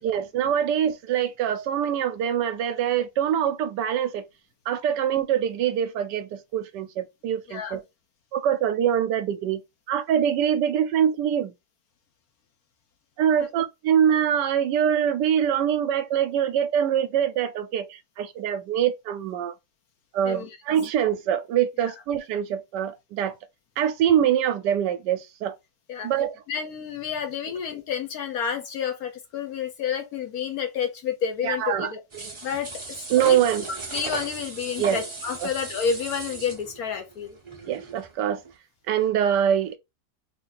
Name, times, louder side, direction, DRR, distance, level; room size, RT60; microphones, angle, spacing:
voice 1, 0.0-4.2 4.7-7.8 8.3-9.6 9.9-11.5 13.2-19.5 20.1-23.3 23.8-25.5 26.0-26.4 31.4-32.4 33.1-33.7 34.8-35.0 35.4-35.5 37.7-38.4 38.9-39.8, right 9 dB, 75° right, 1.1 m, -24 dB
voice 2, 26.5-32.0 32.4-33.4 33.9-37.4, left 7 dB, 65° left, 1.0 m, -30 dB
sound 1, 32.1-38.1 38.4-38.5, right 3 dB, 35° right, 0.4 m, -37 dB
3.3 x 2.5 x 3.9 m
omnidirectional pair, 1.9 m